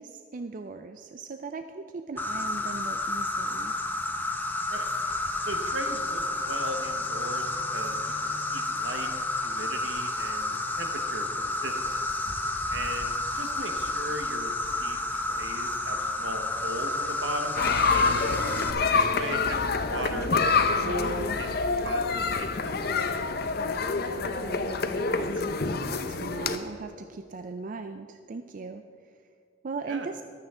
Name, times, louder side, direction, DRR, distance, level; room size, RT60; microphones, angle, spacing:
voice 1, 0.0-3.7 24.0-29.2 29.6-30.2, right 4 dB, 45° right, 8 dB, 0.4 m, -39 dB
Insect, 2.2-18.7, left 2 dB, 10° left, 0.7 m, -30 dB
voice 2, 5.4-9.1 9.4-12.0 12.7-18.2 18.9-23.1 29.9-30.1, right 1 dB, 75° right, 5 dB, 1.3 m, -38 dB
sound 1, 17.6-26.6, left 4 dB, 55° left, 0.7 m, -27 dB
15.0 x 12.0 x 3.7 m, 2.4 s
head